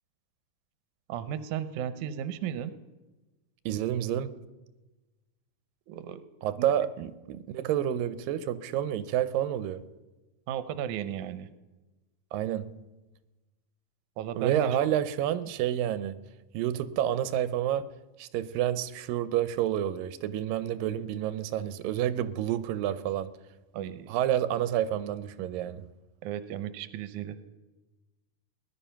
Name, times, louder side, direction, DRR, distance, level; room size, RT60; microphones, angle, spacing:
voice 1, 1.1-2.7 5.9-6.2 6.6-6.7 10.5-11.5 14.2-15.0 23.7-24.1 26.2-27.4, right 9 dB, 75° right, 12 dB, 2.1 m, -35 dB
voice 2, 3.7-4.4 6.4-9.8 12.3-12.8 14.4-16.2 16.5-17.9 18.2-23.3 24.1-25.8, right 11 dB, 90° right, 14 dB, 2.4 m, -29 dB
19.0 x 11.5 x 5.7 m, 1.1 s
omnidirectional pair, 3.9 m